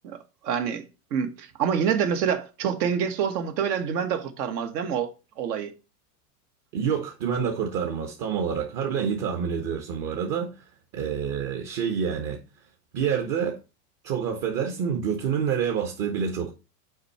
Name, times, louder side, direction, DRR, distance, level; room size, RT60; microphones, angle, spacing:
voice 1, 0.0-5.1 5.4-5.7, right 7 dB, 75° right, 1.5 m, -27 dB
voice 2, 6.7-10.7 10.9-12.4 12.9-13.6 14.0-16.5, right 7 dB, 50° right, 1.3 m, -27 dB
6.5 x 4.6 x 4.2 m
supercardioid pair, 120°, 48 cm